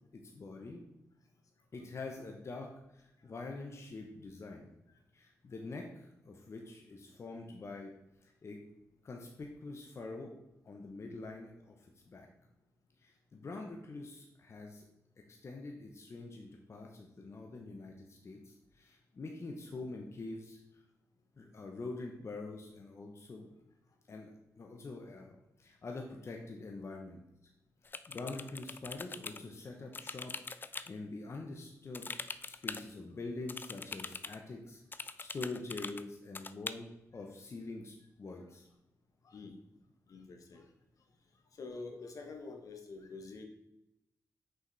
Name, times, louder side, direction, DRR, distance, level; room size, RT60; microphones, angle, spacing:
voice 1, 0.1-0.8 1.7-4.8 5.1-7.9 8.2-8.6 9.0-10.3 10.6-12.3 13.0-14.8 15.3-20.8 21.4-23.5 24.1-27.2 27.8-32.1 32.5-38.7, left 3 dB, 50° left, 1 dB, 1.0 m, -45 dB
sound 1, 27.9-29.4 29.9-30.9 31.9-32.8 33.5-34.4 34.9-36.0 36.4-36.7, left 4 dB, 35° left, 0.4 m, -42 dB
voice 2, 40.1-40.6 41.5-43.4, left 3 dB, 65° left, 3 dB, 1.2 m, -46 dB
6.4 x 5.0 x 4.0 m, 0.87 s
cardioid pair, 70°, 6 cm